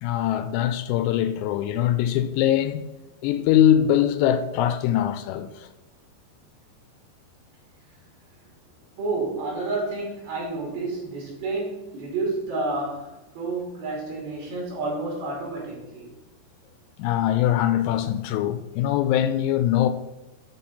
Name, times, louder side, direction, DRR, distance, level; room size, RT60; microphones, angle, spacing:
voice 1, 0.0-2.9 3.2-5.7 17.0-19.9, left 11 dB, 85° left, 2.6 m, -22 dB
voice 2, 9.0-16.1, right 3 dB, 65° right, 4.7 m, -30 dB
11.5 x 4.0 x 4.2 m
omnidirectional pair, 5.0 m